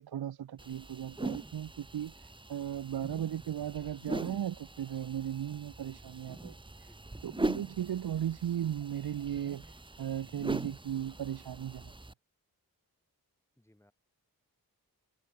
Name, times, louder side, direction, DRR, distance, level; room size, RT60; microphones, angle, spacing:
voice 1, 0.0-6.5 7.2-11.9, right 10 dB, 90° right, 0.7 m, -36 dB
sound 1, 0.6-12.1, right 2 dB, 15° right, 1.0 m, -41 dB
voice 2, 6.8-7.2 13.6-13.9, left 1 dB, 5° left, 4.5 m, -65 dB
wide cardioid pair, 130°, 36 cm